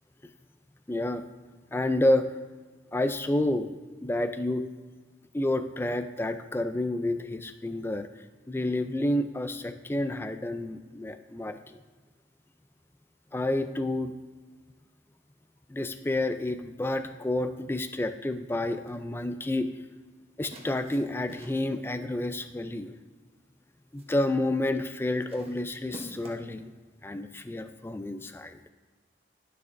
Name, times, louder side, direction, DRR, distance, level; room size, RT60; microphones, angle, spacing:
voice 1, 0.9-1.2 1.7-2.3 2.9-3.7 4.0-4.6 5.3-11.8 13.3-14.1 15.7-19.7 20.4-22.9 23.9-26.7 27.0-28.6, left 1 dB, 15° left, 9 dB, 0.3 m, -29 dB
sound 1, 18.7-19.1 20.5-21.8 22.9-23.2 23.6-24.2 25.3-26.6, equal, 35° right, 1.0 m, -47 dB
11.5 x 6.6 x 2.6 m, 1.4 s
head